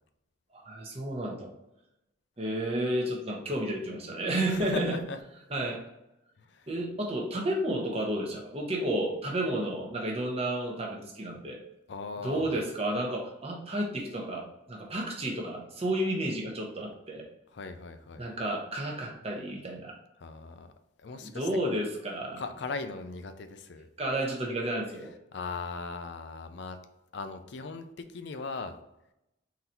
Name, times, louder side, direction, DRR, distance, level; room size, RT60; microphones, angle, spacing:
voice 1, 0.5-1.5 2.4-5.0 5.5-5.8 6.7-11.6 12.2-17.3 18.2-20.0 21.2-22.4 24.0-25.1, right 1 dB, 30° right, 0 dB, 0.8 m, -31 dB
voice 2, 4.5-5.2 6.4-6.7 11.9-12.6 17.5-18.2 20.2-20.7 21.0-21.5 22.4-23.9 25.3-26.8 27.1-28.8, left 4 dB, 60° left, 8 dB, 0.4 m, -38 dB
3.9 x 2.7 x 4.3 m, 0.87 s
head